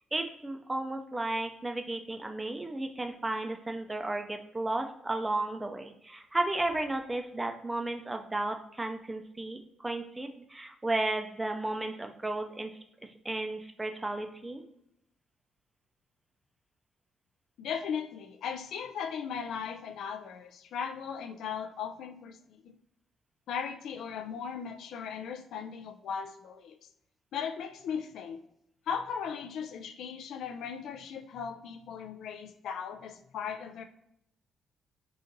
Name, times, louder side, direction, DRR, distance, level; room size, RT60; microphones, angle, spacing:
voice 1, 0.1-12.7 13.2-14.6, right 2 dB, 15° right, 5 dB, 0.5 m, -33 dB
voice 2, 17.6-22.7 23.5-26.8 27.3-28.4 28.9-33.8, left 7 dB, 75° left, 7 dB, 0.4 m, -37 dB
3.9 x 2.5 x 3.9 m, 0.78 s
cardioid pair, 90°, 0 cm